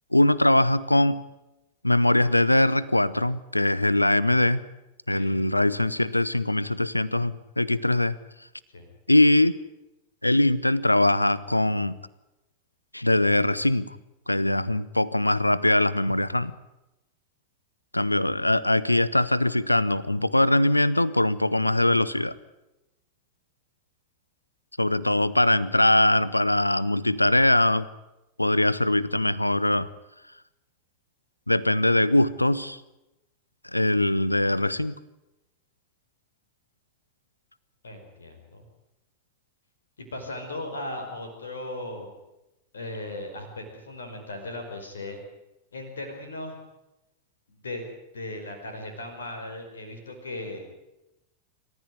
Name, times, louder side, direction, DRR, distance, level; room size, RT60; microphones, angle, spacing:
voice 1, 0.1-1.2 1.8-4.6 5.1-8.2 9.1-9.6 10.2-12.0 12.9-14.0 14.3-16.5 17.9-22.3 24.8-27.9 28.4-29.9 31.5-32.8 33.6-34.9, left 1 dB, 85° left, 20 dB, 0.9 m, -22 dB
voice 2, 37.8-38.6 40.1-42.1 42.7-45.2 45.7-46.5 47.5-47.8 48.1-50.7, left 1 dB, 70° left, 4 dB, 5.1 m, -37 dB
28.0 x 14.5 x 9.6 m, 0.94 s
figure-of-eight pair, 90°, 0 cm